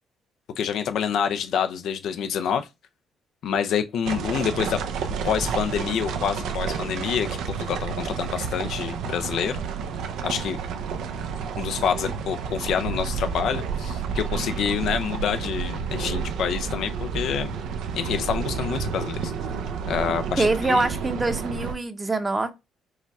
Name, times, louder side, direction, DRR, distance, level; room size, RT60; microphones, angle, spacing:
voice 1, 0.6-2.7 3.4-4.8 5.2-9.6 10.2-10.6 11.6-17.5 17.9-19.3 19.9-20.8, left 8 dB, 70° left, 0.5 m, -27 dB
sound 1, 4.1-21.8, right 6 dB, 75° right, 0.6 m, -30 dB
voice 2, 20.4-22.5, right 2 dB, 25° right, 0.8 m, -24 dB
4.8 x 2.3 x 4.1 m
supercardioid pair, 70°, 0 cm